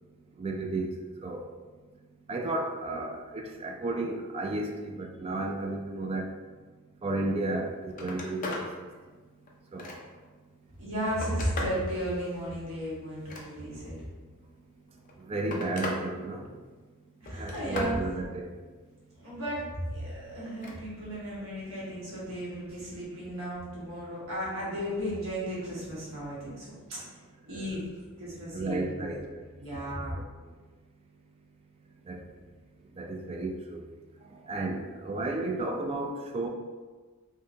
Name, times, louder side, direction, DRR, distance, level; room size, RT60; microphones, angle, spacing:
voice 1, 0.4-1.5 2.3-6.3 7.0-8.9 9.7-9.9 15.3-16.5 17.3-18.5 27.5-27.8 28.5-29.4 29.7-29.8 30.1-30.2 32.1-32.2 33.0-33.8 34.5-36.5, right 2 dB, 25° right, 2 dB, 0.3 m, -33 dB
Telephone, 7.5-7.6 7.9-8.7 9.2-10.3 10.8-11.8 13.1-13.9 14.9-16.0 16.4-16.8 17.3-18.0 20.4-20.8 22.2-22.3, left 2 dB, 40° left, 0.5 m, -38 dB
voice 2, 10.8-13.9 17.2-17.9 19.2-27.2 27.5-27.9 28.2-29.1 29.6-30.1, equal, 65° right, -8 dB, 1.1 m, -35 dB
3.4 x 2.7 x 2.7 m, 1.4 s
head